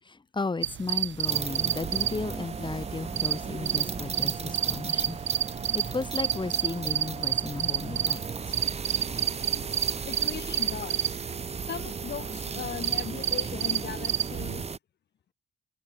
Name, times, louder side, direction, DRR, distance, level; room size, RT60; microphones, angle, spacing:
voice 1, 0.0-5.2 5.7-8.6, left 3 dB, 25° left, 4.4 m, -34 dB
sound 1, 0.6-14.6, right 11 dB, 70° right, 1.7 m, -30 dB
sound 2, 1.2-14.8, right 5 dB, 30° right, 2.4 m, -36 dB
voice 2, 10.1-11.2 11.6-14.8, left 9 dB, 60° left, 3.2 m, -38 dB
cardioid pair, 90°, 20 cm